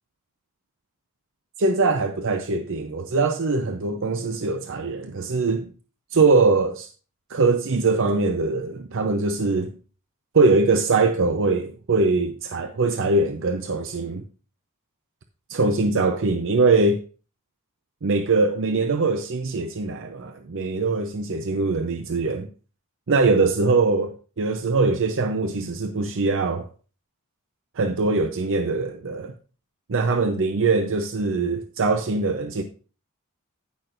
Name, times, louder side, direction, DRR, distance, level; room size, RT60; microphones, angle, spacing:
voice 1, 1.6-5.7 6.1-6.9 7.3-9.8 10.3-14.2 15.5-17.0 18.0-22.5 23.1-26.7 27.8-29.3 29.9-32.6, right 3 dB, 60° right, 0.6 m, -22 dB
15.5 x 5.9 x 2.5 m
head